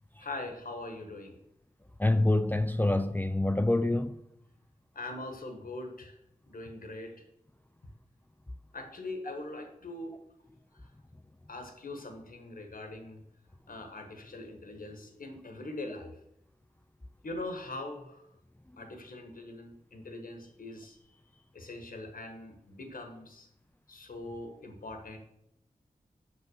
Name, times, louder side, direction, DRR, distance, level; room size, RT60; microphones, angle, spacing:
voice 1, 0.2-1.4 4.9-6.1 6.5-7.2 8.7-10.2 10.7-10.9 11.5-13.2 13.7-16.1 17.2-18.3 18.8-21.0 21.5-23.5 23.9-25.2, left 2 dB, 75° left, 1.4 m, -42 dB
voice 2, 2.0-4.2, left 2 dB, 10° left, 0.4 m, -26 dB
6.0 x 5.5 x 6.4 m
wide cardioid pair, 55°, 15 cm